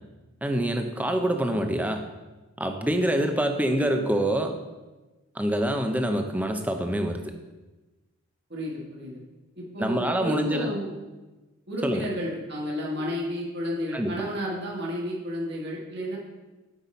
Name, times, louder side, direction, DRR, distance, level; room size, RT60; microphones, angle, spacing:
voice 1, 0.4-2.1 2.6-4.6 5.4-7.3 9.8-10.7 11.8-12.1 13.9-14.1, right 1 dB, 5° right, 5 dB, 0.5 m, -26 dB
voice 2, 8.5-9.2 9.6-10.9 11.7-16.2, equal, 50° right, -3 dB, 1.5 m, -31 dB
8.1 x 5.5 x 4.2 m, 1.1 s
head